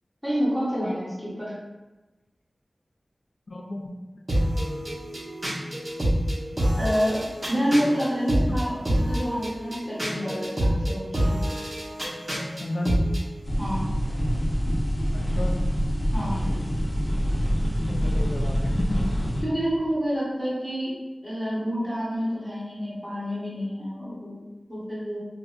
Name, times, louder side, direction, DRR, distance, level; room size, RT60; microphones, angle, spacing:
voice 1, 0.2-1.5 6.8-11.4 13.6-13.9 16.1-16.4 19.4-20.9 21.2-25.2, equal, ahead, -10 dB, 1.1 m, -28 dB
voice 2, 3.5-4.0 4.3-4.9 12.6-13.1 15.1-15.6 17.9-19.2, left 1 dB, 65° left, 1 dB, 0.4 m, -33 dB
sound 1, 4.3-13.3, equal, 35° right, 1.0 m, -27 dB
sound 2, 13.4-19.4, equal, 35° left, 0.8 m, -25 dB
4.6 x 2.1 x 2.5 m, 1.1 s
wide cardioid pair, 80°, 0 cm